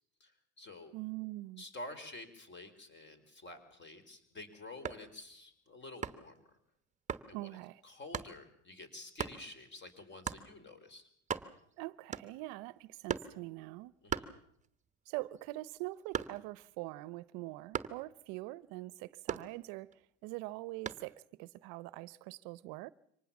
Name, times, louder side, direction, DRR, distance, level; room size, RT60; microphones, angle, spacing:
voice 1, 0.2-0.9 1.6-6.6 7.3-7.5 7.8-11.1 14.0-14.3, left 2 dB, 30° left, 4.5 m, -49 dB
voice 2, 0.9-1.6 7.3-7.8 11.8-13.9 15.1-22.9, right 20 dB, 65° right, 0.8 m, -43 dB
sound 1, 4.7-5.1 6.0-6.4 7.1-7.3 8.1-8.4 9.2-9.4 10.2-10.5 10.9-11.0 11.2-11.7 12.1-12.5 13.1-13.4 14.1-14.8 15.2-16.6 17.7-18.1 19.3-19.9 20.9-21.1, right 6 dB, 20° right, 1.2 m, -39 dB
25.0 x 19.0 x 7.1 m
supercardioid pair, 115°, 38 cm